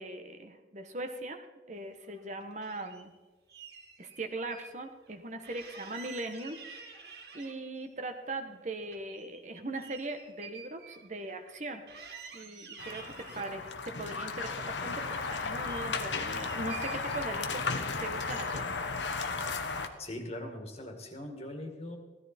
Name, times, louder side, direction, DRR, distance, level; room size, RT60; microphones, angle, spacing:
voice 1, 0.0-1.4 1.7-3.1 4.0-7.0 7.3-11.8 12.3-17.6 18.0-18.6, right 2 dB, 40° right, 6 dB, 1.2 m, -40 dB
sound 1, 2.0-3.1 3.5-4.7 5.0-5.1 5.4-7.8 8.2-11.6 11.9-13.5 14.1-15.0 15.3-17.8 18.1-18.8, right 6 dB, 60° right, 2.4 m, -50 dB
sound 2, 12.8-19.9, left 4 dB, 85° left, 1.2 m, -35 dB
voice 2, 20.0-22.0, left 1 dB, 35° left, 4 dB, 2.0 m, -41 dB
16.5 x 13.5 x 4.4 m, 1.2 s
head